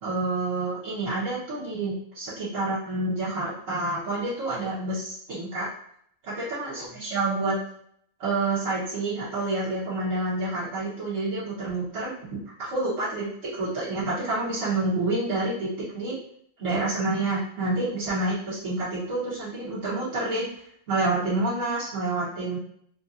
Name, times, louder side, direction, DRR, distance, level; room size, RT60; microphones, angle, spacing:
voice 1, 0.0-5.7 6.5-7.6 8.2-16.2 16.6-20.5 20.9-22.6, right 2 dB, 75° right, -11 dB, 1.6 m, -28 dB
3.8 x 2.6 x 2.7 m, 0.66 s
omnidirectional pair, 1.4 m